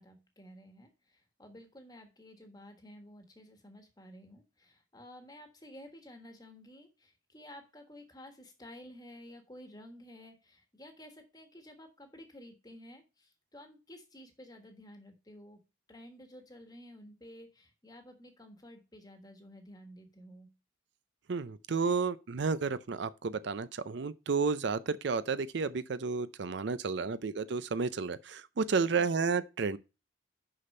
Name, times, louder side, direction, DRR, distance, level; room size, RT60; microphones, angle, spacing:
voice 1, 0.0-15.6 15.9-20.5, left 1 dB, 20° left, 1.4 m, -52 dB
voice 2, 21.3-29.8, right 4 dB, 60° right, 0.5 m, -32 dB
6.5 x 5.9 x 5.4 m
head